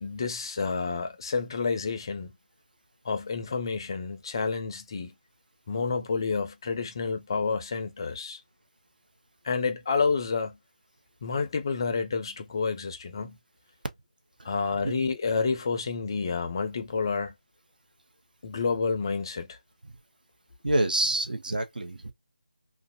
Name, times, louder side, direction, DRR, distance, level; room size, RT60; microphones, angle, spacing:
voice 1, 0.0-2.3 3.0-5.1 5.7-8.4 9.4-10.6 11.2-13.4 14.4-17.3 18.4-19.6, left 5 dB, 30° left, 0.4 m, -29 dB
voice 2, 20.6-22.1, right 1 dB, 70° right, 0.7 m, -27 dB
2.5 x 2.0 x 2.4 m
figure-of-eight pair, 160°, 5 cm